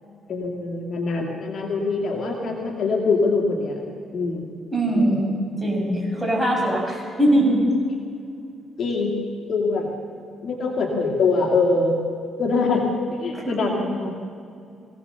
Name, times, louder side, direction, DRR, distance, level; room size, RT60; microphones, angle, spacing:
voice 1, 0.3-3.8 4.1-4.5 4.9-5.2 8.8-9.2 9.5-9.9 10.4-12.0 12.4-14.1, left 3 dB, 55° left, 0 dB, 2.4 m, -23 dB
voice 2, 4.7-5.3 5.6-7.6 13.3-13.5, right 1 dB, ahead, -2 dB, 7.2 m, -21 dB
22.5 x 17.0 x 6.9 m, 2.4 s
cardioid pair, 90°, 0 cm